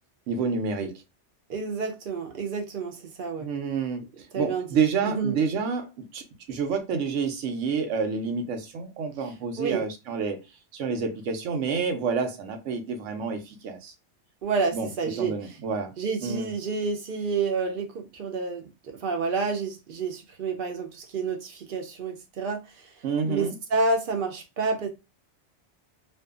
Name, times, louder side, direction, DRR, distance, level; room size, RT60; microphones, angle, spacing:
voice 1, 0.3-1.0 3.4-5.9 6.1-10.4 10.7-13.9 14.7-14.9 15.2-15.9 16.2-16.5 23.0-23.5, right 5 dB, 90° right, 1.0 m, -28 dB
voice 2, 1.5-3.5 4.3-4.7 5.0-5.4 9.6-9.8 14.4-15.3 16.0-22.9 23.3-24.9, right 4 dB, 60° right, 0.6 m, -29 dB
2.6 x 2.3 x 2.3 m
omnidirectional pair, 1.2 m